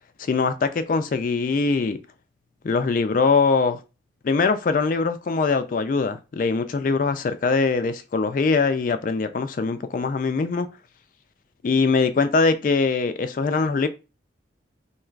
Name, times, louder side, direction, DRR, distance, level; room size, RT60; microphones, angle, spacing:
voice 1, 0.2-2.0 2.6-3.8 4.2-10.7 11.6-13.9, left 4 dB, 45° left, 0.3 m, -22 dB
4.4 x 2.9 x 2.4 m
head